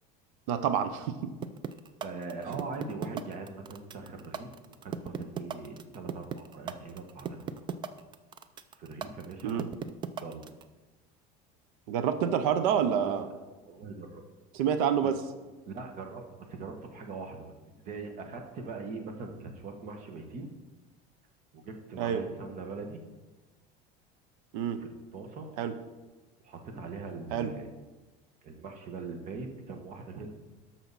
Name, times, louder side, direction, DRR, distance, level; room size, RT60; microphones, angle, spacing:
voice 1, 0.5-1.3 2.5-2.6 9.4-9.7 11.9-13.3 14.5-15.2 22.0-22.2 24.5-24.8 25.6-25.7 27.3-27.5, right 8 dB, 85° right, 11 dB, 0.8 m, -28 dB
sound 1, 1.4-10.6, right 8 dB, 25° right, 0.4 m, -36 dB
voice 2, 2.0-4.5 4.8-7.8 8.8-9.8 10.2-10.5 13.0-13.1 13.7-14.2 15.7-17.5 17.8-20.5 21.5-23.0 24.6-25.5 26.4-27.8 28.4-30.3, right 4 dB, 45° right, 4 dB, 1.4 m, -41 dB
13.0 x 5.9 x 4.1 m, 1.2 s
cardioid pair, 145°, 18 cm